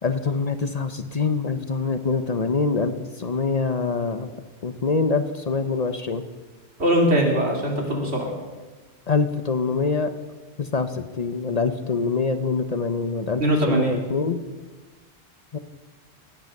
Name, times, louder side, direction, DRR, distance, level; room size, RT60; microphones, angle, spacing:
voice 1, 0.0-4.3 4.6-6.3 9.1-10.1 10.6-14.4 15.5-15.6, left 4 dB, 40° left, 10 dB, 0.8 m, -25 dB
voice 2, 6.8-8.3 13.4-14.0, right 1 dB, 80° right, 1 dB, 3.0 m, -21 dB
18.5 x 8.8 x 6.5 m, 1.3 s
omnidirectional pair, 1.1 m